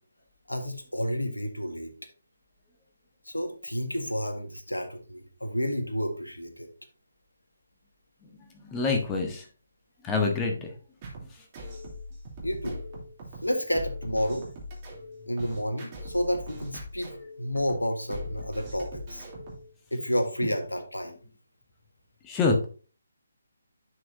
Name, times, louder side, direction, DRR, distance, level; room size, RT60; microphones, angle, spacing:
voice 1, 0.5-1.9 3.3-6.7 12.4-12.8 13.4-14.5 15.3-17.1 17.4-19.3 19.9-21.2, equal, 80° left, 6 dB, 1.7 m, -30 dB
voice 2, 8.2-9.4 10.0-10.7 11.3-11.4 22.2-22.7, left 4 dB, 15° left, 2 dB, 1.3 m, -27 dB
sound 1, 11.0-19.7, left 1 dB, 25° right, 3.2 m, -41 dB
11.0 x 6.2 x 2.8 m, 0.36 s
figure-of-eight pair, 145°, 0 cm